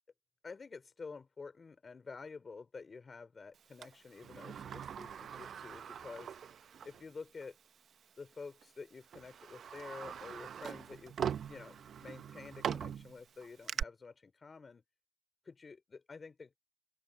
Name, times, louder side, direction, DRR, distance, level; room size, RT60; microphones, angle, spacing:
voice 1, 0.4-6.4 6.8-7.6 8.2-11.2 11.5-14.8 15.4-16.6, left 4 dB, 35° left, 3.5 m, -49 dB
Sliding door, 3.8-7.0 7.4-7.5 8.4-8.6 9.1-13.8, right 8 dB, 60° right, 0.8 m, -42 dB
open air
cardioid pair, 90°, 0 cm